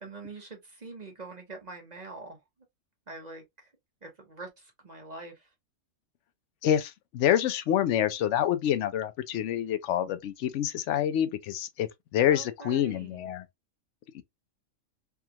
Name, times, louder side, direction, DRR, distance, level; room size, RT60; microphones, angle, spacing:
voice 1, 0.0-2.4 3.1-3.4 4.0-5.5 12.3-13.3, right 3 dB, 35° right, 1.0 m, -44 dB
voice 2, 6.6-13.4 14.1-14.2, left 10 dB, 70° left, 0.9 m, -27 dB
3.4 x 2.4 x 2.8 m
omnidirectional pair, 1.4 m